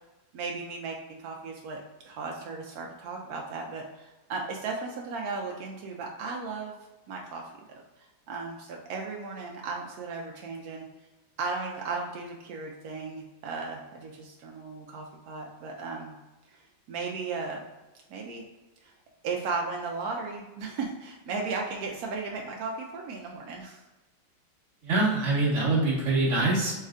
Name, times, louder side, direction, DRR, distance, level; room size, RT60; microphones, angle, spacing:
voice 1, 0.3-6.8 7.1-10.9 11.4-16.1 16.5-17.6 18.1-18.4 18.8-18.9 19.2-23.8, right 4 dB, 85° right, 0 dB, 0.8 m, -36 dB
voice 2, 24.8-26.7, right 2 dB, 45° right, -6 dB, 1.3 m, -24 dB
4.2 x 3.2 x 2.4 m, 1.1 s
omnidirectional pair, 2.1 m